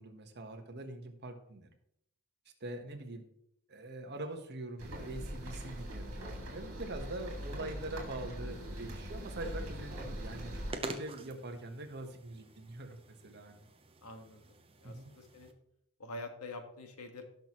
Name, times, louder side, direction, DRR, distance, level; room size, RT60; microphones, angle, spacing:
voice 1, 0.0-1.7 2.6-3.3 3.7-6.1 6.5-10.5 10.8-13.6 14.8-15.1, right 2 dB, 50° right, 5 dB, 1.3 m, -43 dB
sound 1, 4.8-10.7, equal, 65° right, 3.0 m, -42 dB
voice 2, 8.3-8.9 14.0-14.4 14.8-15.5 16.0-17.2, left 2 dB, 75° left, 5 dB, 1.6 m, -47 dB
sound 2, 8.5-15.5, right 2 dB, 25° right, 0.9 m, -49 dB
17.5 x 6.1 x 3.1 m, 0.73 s
head